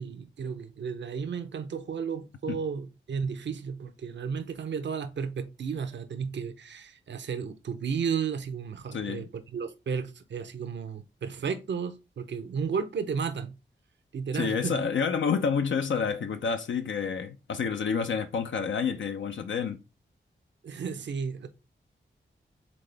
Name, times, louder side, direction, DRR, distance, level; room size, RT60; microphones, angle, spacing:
voice 1, 0.0-13.5 14.1-14.8 20.6-21.5, right 6 dB, 65° right, 0.6 m, -33 dB
voice 2, 8.9-9.3 14.3-19.8, left 6 dB, 75° left, 0.5 m, -29 dB
4.1 x 3.7 x 3.3 m
cardioid pair, 60°, 20 cm